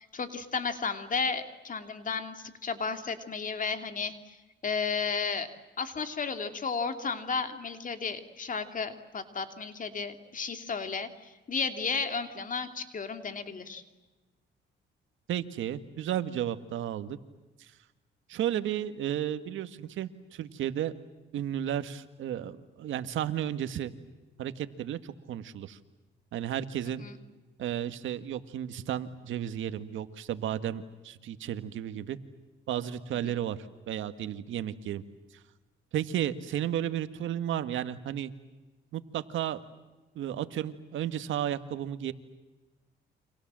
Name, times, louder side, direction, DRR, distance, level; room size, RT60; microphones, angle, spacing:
voice 1, 0.0-4.4 4.6-5.5 5.8-13.8 27.0-27.2 33.2-33.4, left 5 dB, 40° left, 8 dB, 2.8 m, -33 dB
voice 2, 15.3-17.2 17.6-17.7 18.3-20.9 21.3-23.9 24.4-25.8 26.3-27.1 27.6-32.2 32.7-33.6 33.9-35.0 35.9-38.3 38.9-39.6 40.2-42.1, right 10 dB, 80° right, 11 dB, 1.8 m, -33 dB
30.0 x 26.0 x 7.6 m, 1.1 s
cardioid pair, 90°, 20 cm